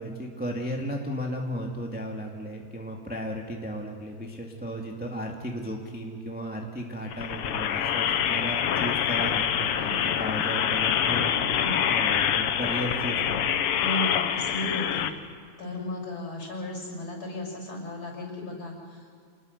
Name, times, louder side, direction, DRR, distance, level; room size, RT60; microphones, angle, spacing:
voice 1, 0.0-11.4 11.9-13.6, equal, 5° right, 0 dB, 1.5 m, -35 dB
sound 1, 7.1-15.1, left 9 dB, 65° left, 1.6 m, -26 dB
voice 2, 9.7-10.4 11.6-11.9 13.8-15.1 15.6-19.1, left 1 dB, 45° left, 1 dB, 6.9 m, -35 dB
28.0 x 20.5 x 6.6 m, 2.3 s
omnidirectional pair, 3.3 m